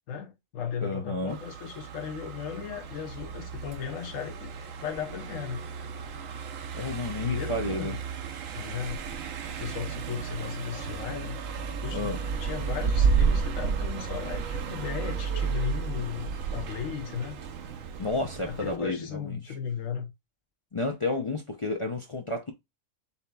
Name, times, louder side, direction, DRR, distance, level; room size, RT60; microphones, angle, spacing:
voice 1, 0.1-4.6 4.8-5.6 7.2-8.0 8.6-9.0 9.6-11.4 11.8-12.1 12.4-17.4 18.4-20.1, left 7 dB, 75° left, 1.2 m, -36 dB
voice 2, 0.8-1.4 6.7-8.0 11.9-12.2 18.0-19.4 20.7-22.5, left 2 dB, 40° left, 0.4 m, -31 dB
Car passing by, 1.3-18.8, right 6 dB, 80° right, 1.1 m, -32 dB
7.0 x 2.9 x 2.2 m
omnidirectional pair, 1.4 m